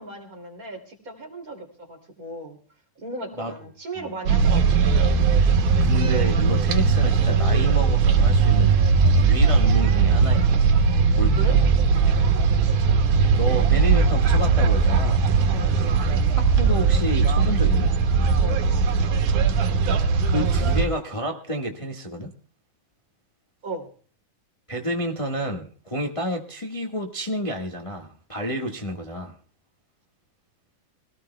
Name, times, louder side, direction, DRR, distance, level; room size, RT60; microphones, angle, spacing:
voice 1, 0.0-2.6 3.0-4.9 11.3-11.6 15.5-15.8 18.4-18.7 23.6-23.9, right 1 dB, 30° right, 2.9 m, -36 dB
sound 1, 4.3-20.9, right 5 dB, 85° right, 2.9 m, -19 dB
voice 2, 5.8-8.7 9.2-10.6 11.2-11.6 13.3-15.3 16.4-17.9 20.3-22.3 24.7-29.3, equal, 25° left, 0.6 m, -30 dB
23.5 x 17.5 x 2.3 m
omnidirectional pair, 3.4 m